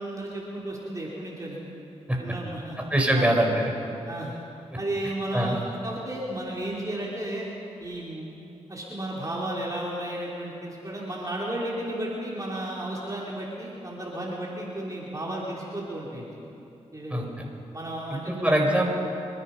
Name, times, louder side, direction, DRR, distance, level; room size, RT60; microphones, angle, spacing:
voice 1, 0.0-1.6 2.2-2.8 3.1-3.3 4.0-4.3 4.8-7.5 7.8-8.3 8.7-16.4 16.9-17.3 17.7-18.8, right 1 dB, 30° right, -4 dB, 3.4 m, -33 dB
voice 2, 2.9-3.7 5.3-5.6 17.1-17.5 18.1-18.9, right 1 dB, 10° right, 0 dB, 3.7 m, -23 dB
26.0 x 10.0 x 5.6 m, 2.8 s
supercardioid pair, 45°, 12 cm